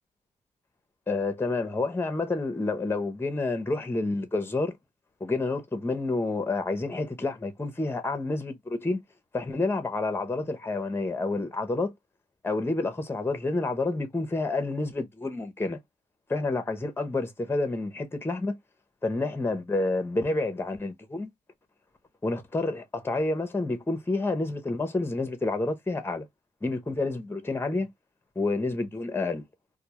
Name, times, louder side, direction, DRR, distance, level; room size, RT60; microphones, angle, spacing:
voice 1, 1.1-4.7 5.2-9.0 9.3-11.9 12.4-15.8 16.3-18.6 19.0-21.3 22.2-26.3 26.6-27.9 28.4-29.4, left 2 dB, 15° left, 0.6 m, -29 dB
2.1 x 2.1 x 2.9 m
cardioid pair, 80°, 14 cm